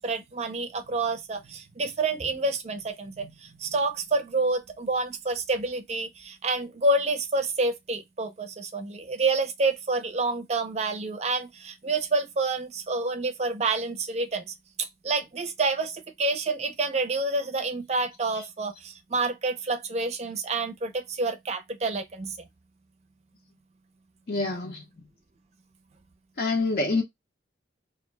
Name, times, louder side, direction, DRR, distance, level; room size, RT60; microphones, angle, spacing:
voice 1, 0.0-22.4, right 3 dB, 40° right, 0.5 m, -28 dB
voice 2, 24.3-24.8 26.4-27.0, left 3 dB, 55° left, 0.6 m, -26 dB
2.4 x 2.1 x 3.1 m
head